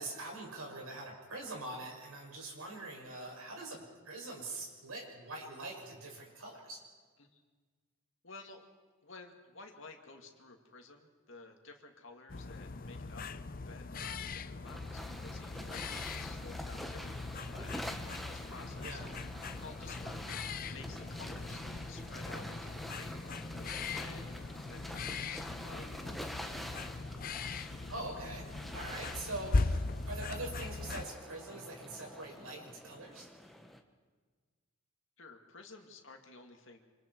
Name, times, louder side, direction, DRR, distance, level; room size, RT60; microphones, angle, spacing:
voice 1, 0.0-6.8 18.8-19.1 21.3-21.4 27.9-33.3, right 2 dB, 75° right, 0 dB, 6.1 m, -44 dB
voice 2, 8.2-8.7 9.0-13.3 13.7-18.0 18.3-19.0 19.6-21.6 21.9-24.3 24.7-26.5 35.2-36.8, left 3 dB, 60° left, 3 dB, 2.4 m, -53 dB
sound 1, 12.3-31.1, left 3 dB, 40° left, 0.6 m, -40 dB
sound 2, 14.6-33.8, equal, ahead, 1.2 m, -47 dB
27.5 x 26.5 x 4.7 m, 1.5 s
head